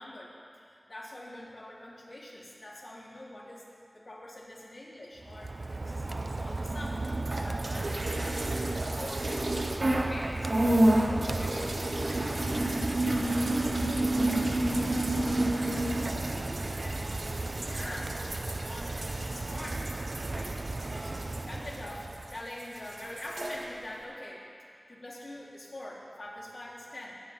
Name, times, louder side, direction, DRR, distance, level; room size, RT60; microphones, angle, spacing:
voice 1, 0.0-5.5 5.8-8.4 8.9-9.8 10.1-12.7 13.2-15.5 15.8-19.9 20.2-20.6 20.9-24.5 24.9-27.1, left 1 dB, 75° left, -6 dB, 3.6 m, -45 dB
Rain, 5.2-22.5, right 2 dB, 60° right, 0.4 m, -35 dB
sound 1, 7.3-10.1 10.4-22.3 22.6-23.5, right 1 dB, 75° right, 2.0 m, -30 dB
22.5 x 9.9 x 5.5 m, 2.3 s
wide cardioid pair, 60°, 0 cm